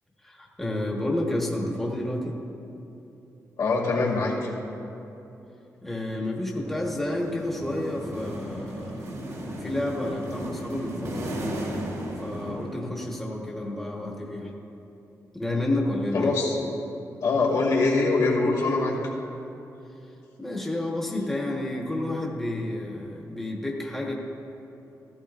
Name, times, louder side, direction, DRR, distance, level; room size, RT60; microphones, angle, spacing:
voice 1, 0.2-2.4 5.8-9.2 9.4-11.4 12.2-14.5 15.3-16.3 20.4-24.1, left 1 dB, 5° left, -2 dB, 1.1 m, -30 dB
voice 2, 3.6-4.5 16.1-16.6 17.2-19.0, left 3 dB, 75° left, -3 dB, 2.2 m, -23 dB
sound 1, 6.6-13.2, right 1 dB, 65° right, 2.1 m, -35 dB
15.0 x 14.0 x 2.4 m, 2.9 s
wide cardioid pair, 145°, 6 cm